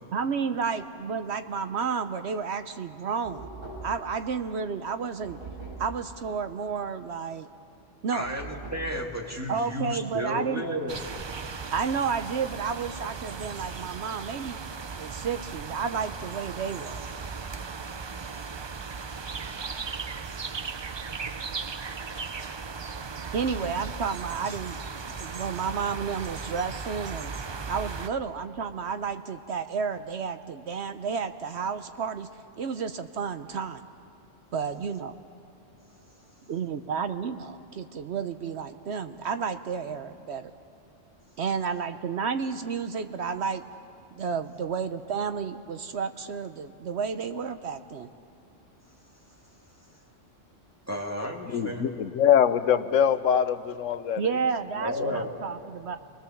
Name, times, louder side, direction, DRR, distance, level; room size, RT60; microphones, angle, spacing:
voice 1, 0.1-3.4 3.8-5.4 5.8-7.5 8.0-8.3 9.5-10.7 11.7-14.6 15.0-17.0 23.3-24.8 25.2-27.3 27.7-32.3 32.6-33.8 34.5-35.2 36.5-40.5 41.4-43.6 44.1-48.1 54.2-56.0, right 6 dB, 65° right, 9 dB, 0.9 m, -31 dB
Knock, 3.2-4.1 5.2-6.0 8.2-9.0, right 3 dB, 85° right, 8.1 m, -41 dB
voice 2, 8.1-11.0 23.0-23.1 50.9-51.8 54.8-55.4, equal, 10° right, 0 dB, 2.1 m, -32 dB
sound 1, 10.9-28.1, right 5 dB, 45° right, 0.3 m, -37 dB
voice 3, 51.5-54.4 55.0-55.2, left 8 dB, 85° left, 12 dB, 1.2 m, -24 dB
29.0 x 20.5 x 7.1 m, 2.6 s
omnidirectional pair, 1.3 m